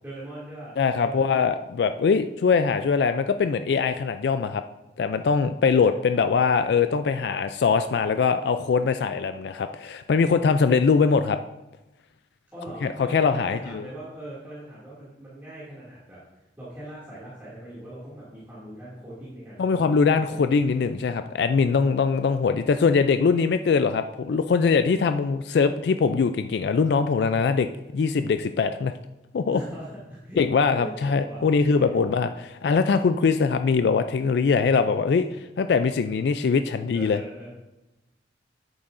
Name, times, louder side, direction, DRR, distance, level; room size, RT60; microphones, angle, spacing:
voice 1, 0.0-1.5 5.7-5.9 12.5-19.9 20.1-20.5 29.5-30.4 30.8-31.4 31.8-32.1 36.9-37.5, right 1 dB, 10° right, -11 dB, 2.4 m, -41 dB
voice 2, 0.8-4.6 5.0-11.4 12.8-13.8 19.6-28.9 29.3-29.6 30.4-37.2, left 5 dB, 65° left, 10 dB, 0.3 m, -22 dB
10.5 x 8.8 x 2.6 m, 1.0 s
head